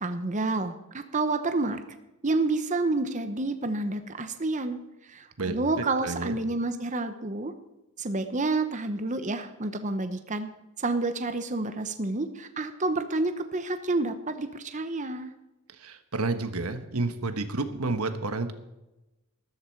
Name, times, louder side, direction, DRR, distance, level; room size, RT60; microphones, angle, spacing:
voice 1, 0.0-1.8 2.2-4.8 5.1-7.5 8.0-10.5 10.8-15.3, right 2 dB, 35° right, 8 dB, 0.9 m, -29 dB
voice 2, 6.0-6.4 15.8-18.5, right 3 dB, 90° right, 9 dB, 1.3 m, -30 dB
14.0 x 13.5 x 4.6 m, 0.98 s
head